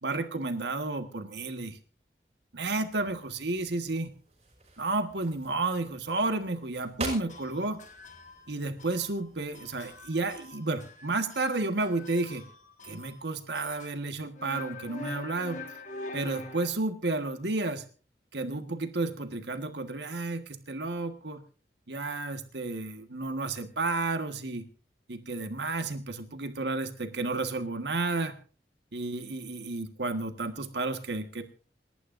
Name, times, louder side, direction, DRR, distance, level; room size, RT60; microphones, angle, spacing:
voice 1, 0.0-1.8 2.5-4.1 4.8-7.8 8.5-12.4 12.8-15.6 16.1-17.8 18.3-21.4 21.9-24.6 25.1-28.3 28.9-31.4, right 2 dB, 80° right, 7 dB, 1.6 m, -32 dB
sound 1, 2.9-10.5, right 2 dB, 35° right, 5.3 m, -45 dB
sound 2, 7.3-8.5 8.8-9.3 9.5-13.3 13.5-13.9 14.4-16.7, left 2 dB, 45° left, 1.6 m, -44 dB
28.0 x 11.0 x 2.6 m, 0.38 s
head